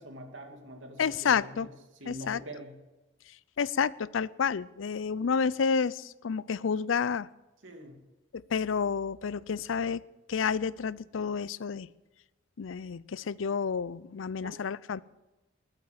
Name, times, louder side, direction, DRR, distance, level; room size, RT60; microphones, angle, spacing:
voice 1, 0.0-2.8 7.6-8.0 14.4-14.6, equal, 75° right, 3 dB, 2.6 m, -45 dB
voice 2, 1.0-1.7 2.1-2.4 3.6-7.3 8.5-10.0 10.3-11.9 12.6-15.0, left 6 dB, 85° left, 20 dB, 0.5 m, -30 dB
20.5 x 9.0 x 7.2 m, 1.1 s
head